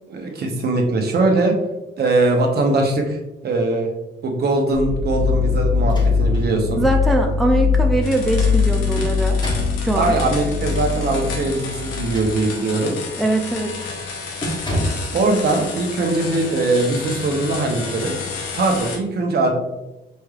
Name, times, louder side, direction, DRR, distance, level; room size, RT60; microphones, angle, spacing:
voice 1, 0.1-1.5 2.0-3.2 3.4-3.9 4.2-6.8 9.9-13.0 14.7-14.8 15.1-18.1 18.6-19.5, right 2 dB, 55° right, 2 dB, 0.9 m, -21 dB
sound 1, 4.7-12.5, left 5 dB, 60° left, 1.0 m, -21 dB
sound 2, 5.8-6.5 6.9-7.0 8.5-9.8 11.9-12.8 13.3-13.5 13.8-14.0 14.4-15.1, equal, 20° left, 1.2 m, -29 dB
voice 2, 6.8-9.4 9.8-10.1 13.2-13.9, right 1 dB, ahead, 3 dB, 0.4 m, -21 dB
sound 3, 8.0-19.0, left 4 dB, 85° left, 0.8 m, -32 dB
5.3 x 3.2 x 2.4 m, 1.0 s
cardioid pair, 90°, 20 cm